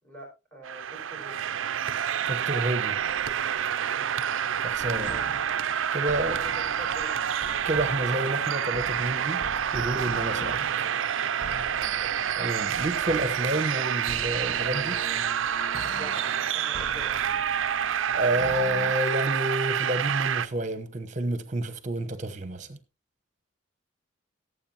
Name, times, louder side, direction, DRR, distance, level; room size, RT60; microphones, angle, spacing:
voice 1, 0.0-1.5 4.0-4.2 5.0-5.4 6.2-7.1 11.6-12.1 16.0-17.4, equal, 5° left, 5.2 m, -45 dB
sound 1, 0.6-20.5, right 9 dB, 75° right, 0.5 m, -28 dB
voice 2, 2.3-3.0 4.6-5.1 5.9-6.4 7.6-9.4 9.7-10.9 12.4-15.0 18.1-22.8, right 1 dB, 40° right, 1.1 m, -29 dB
sound 2, 4.8-18.9, left 2 dB, 40° left, 1.1 m, -43 dB
17.5 x 7.8 x 2.9 m
head